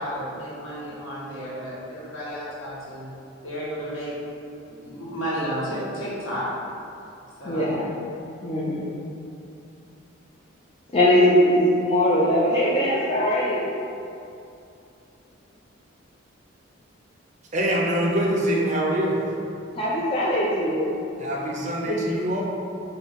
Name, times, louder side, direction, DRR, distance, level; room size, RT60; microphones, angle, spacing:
voice 1, 0.0-3.1 3.4-4.1 4.7-6.4 7.4-7.7, equal, 80° left, -9 dB, 1.4 m, -32 dB
voice 2, 7.4-7.9 8.4-8.9 10.9-13.7 19.8-21.0 21.8-22.0, equal, 25° left, -6 dB, 0.4 m, -21 dB
voice 3, 17.5-19.2 21.2-22.4, right 1 dB, 35° right, -2 dB, 0.5 m, -24 dB
5.1 x 2.3 x 3.5 m, 2.6 s
head